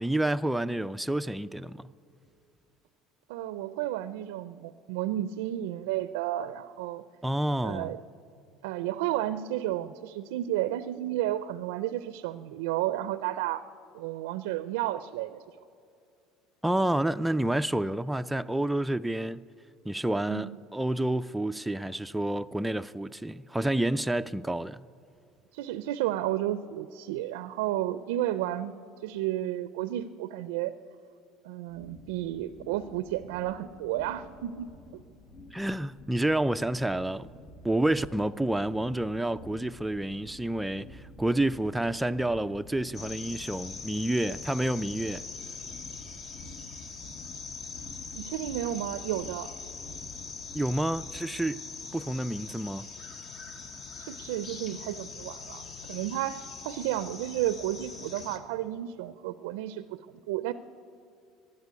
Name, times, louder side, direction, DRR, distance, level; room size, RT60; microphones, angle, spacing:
voice 1, 0.0-1.9 7.2-7.9 16.6-19.5 19.9-24.8 35.5-37.3 37.6-45.3 50.5-51.6 51.9-52.9, right 1 dB, 5° right, 0.3 m, -29 dB
voice 2, 3.3-7.0 7.6-8.0 8.6-13.6 13.9-15.4 20.3-20.6 25.5-28.7 29.0-30.8 31.4-34.7 34.9-35.0 48.1-49.5 53.9-60.5, right 13 dB, 85° right, 0.4 m, -32 dB
sound 1, 31.7-51.2, left 1 dB, 70° left, 2.1 m, -50 dB
sound 2, 42.9-58.4, left 4 dB, 45° left, 1.3 m, -42 dB
12.5 x 11.0 x 9.5 m
supercardioid pair, 95°, 0 cm